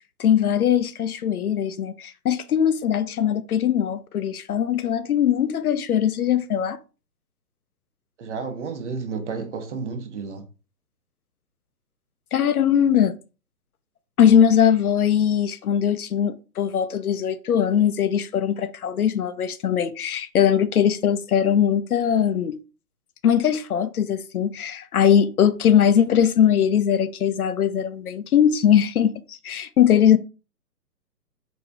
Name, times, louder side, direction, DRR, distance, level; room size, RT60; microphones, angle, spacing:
voice 1, 0.2-6.8 12.3-13.2 14.2-22.6 23.2-30.2, left 9 dB, 65° left, 0.5 m, -20 dB
voice 2, 8.2-10.4, right 5 dB, 45° right, 1.0 m, -31 dB
4.1 x 2.8 x 3.3 m
figure-of-eight pair, 135°, 49 cm